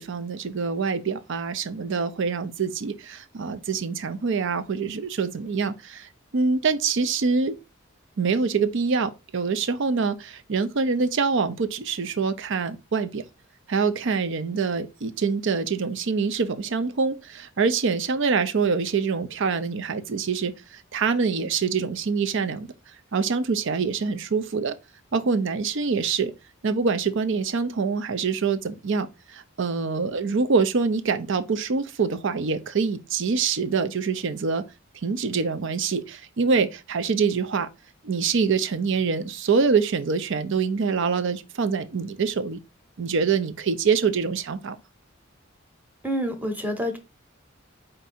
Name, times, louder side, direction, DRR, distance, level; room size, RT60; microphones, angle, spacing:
voice 1, 0.0-7.6 8.2-13.2 13.7-20.5 20.9-22.7 23.1-24.7 25.1-26.3 26.6-34.6 35.0-37.7 38.0-42.6 43.0-44.8, right 5 dB, 65° right, 0.5 m, -25 dB
voice 2, 46.0-47.0, equal, 10° right, 0.9 m, -27 dB
4.7 x 2.6 x 4.1 m
head